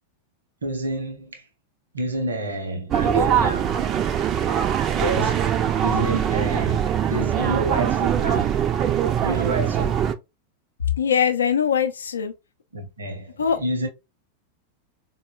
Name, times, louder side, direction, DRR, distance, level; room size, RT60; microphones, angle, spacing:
voice 1, 0.6-1.5 1.9-3.8 4.9-5.5 5.8-8.9 9.2-10.0 12.7-13.9, right 1 dB, 70° right, 0.8 m, -29 dB
sound 1, 2.9-10.1, right 9 dB, 30° right, 0.4 m, -22 dB
voice 2, 11.0-12.3 13.4-13.6, left 7 dB, 70° left, 0.4 m, -21 dB
4.1 x 2.1 x 2.3 m
figure-of-eight pair, 90°, 0 cm